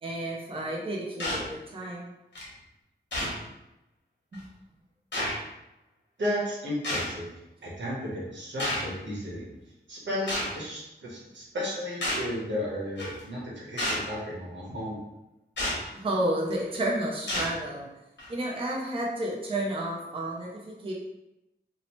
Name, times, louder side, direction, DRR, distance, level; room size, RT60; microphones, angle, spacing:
voice 1, 0.0-2.1 4.3-4.4 15.9-17.9 18.3-20.9, right 1 dB, 30° right, -3 dB, 0.5 m, -31 dB
sound 1, 1.2-1.4 2.4-2.5 3.1-3.4 4.3-4.4 5.1-5.3 6.8-7.1 8.6-8.9 10.3-10.5 12.0-12.3 13.0-13.2 13.8-14.1 15.6-15.8 16.5-16.8 17.3-17.5 18.2-18.3, left 1 dB, 80° left, 0.9 m, -30 dB
voice 2, 6.2-7.3 7.6-9.6 9.9-15.1, left 1 dB, 85° right, -6 dB, 0.9 m, -34 dB
2.8 x 2.0 x 2.9 m, 0.93 s
wide cardioid pair, 105°, 18 cm